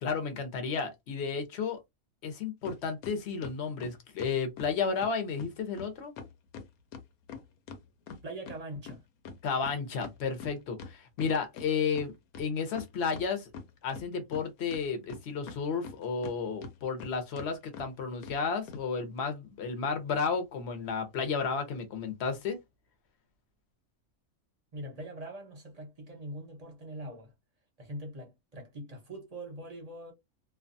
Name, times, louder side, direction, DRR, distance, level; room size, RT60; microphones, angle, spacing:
voice 1, 0.0-1.8 2.2-6.1 9.4-13.5 13.8-22.6, left 5 dB, 55° left, 0.9 m, -32 dB
sound 1, 2.6-2.8 3.0-4.7 5.0-5.1 5.4-5.5 5.8-5.9 6.2-8.6 8.9-11.7 11.9-12.0 12.3-13.3 13.5-14.4 14.7-16.3 16.6-17.1 17.4-17.5 17.7-17.9 18.2-18.4 18.7-18.8, left 5 dB, 75° left, 1.1 m, -44 dB
voice 2, 8.2-9.0 24.7-27.3 27.8-30.1, right 1 dB, 35° right, 0.6 m, -42 dB
2.5 x 2.3 x 2.5 m
omnidirectional pair, 1.6 m